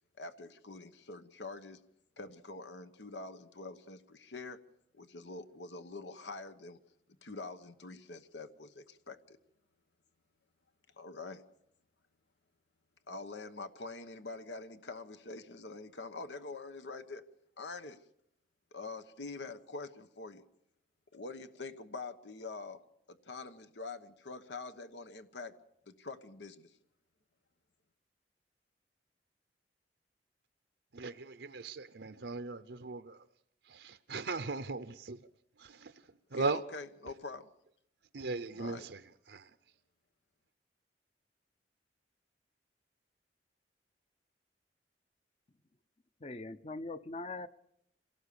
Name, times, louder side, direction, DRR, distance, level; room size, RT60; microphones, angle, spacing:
voice 1, 0.2-1.8 2.2-4.6 4.9-6.8 7.2-9.4 11.0-11.4 13.1-17.2 17.6-18.0 18.7-20.4 21.1-22.8 23.1-25.5 25.9-26.8 36.3-37.5 38.5-38.9, left 3 dB, 90° left, 1.2 m, -45 dB
voice 2, 30.9-33.2 33.7-35.2 35.6-35.9 36.3-36.6 38.1-39.0 39.3-39.5, right 3 dB, 80° right, 0.7 m, -38 dB
voice 3, 46.2-47.5, left 2 dB, 35° left, 0.8 m, -41 dB
26.5 x 17.5 x 6.9 m
head